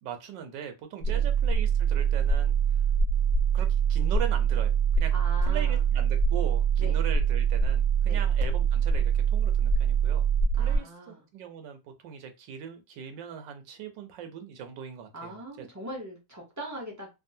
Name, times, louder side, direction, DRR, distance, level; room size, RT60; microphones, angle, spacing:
voice 1, 0.0-2.6 3.5-5.1 5.4-10.2 10.5-15.7, right 8 dB, 90° right, 1.3 m, -40 dB
sound 1, 1.0-10.8, right 6 dB, 50° right, 1.3 m, -24 dB
voice 2, 5.1-5.8 6.8-7.0 8.1-8.2 10.6-11.2 15.1-17.2, right 1 dB, 30° right, 0.3 m, -41 dB
3.5 x 2.0 x 2.7 m
omnidirectional pair, 1.9 m